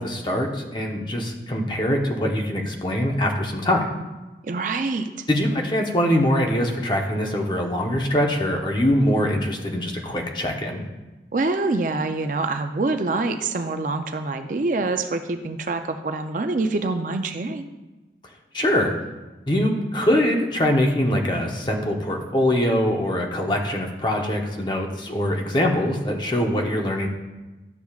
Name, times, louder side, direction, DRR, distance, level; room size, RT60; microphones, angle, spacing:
voice 1, 0.0-3.9 5.3-10.8 18.5-18.9 19.5-27.1, left 1 dB, 25° left, 1 dB, 0.8 m, -23 dB
voice 2, 4.4-5.1 11.3-17.7, right 3 dB, 45° right, 7 dB, 0.4 m, -25 dB
12.0 x 6.9 x 2.4 m, 1.1 s
head